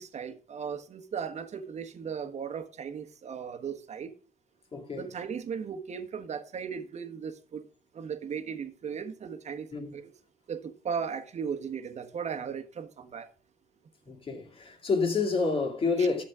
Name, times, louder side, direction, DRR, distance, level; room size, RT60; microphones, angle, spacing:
voice 1, 0.0-4.1 4.9-7.6 7.9-10.0 10.5-13.3 16.0-16.1, right 6 dB, 40° right, 1.4 m, -37 dB
voice 2, 4.7-5.1 9.7-9.9 14.1-16.2, left 4 dB, 30° left, 2.4 m, -28 dB
12.0 x 7.6 x 3.7 m
cardioid pair, 110°, 17 cm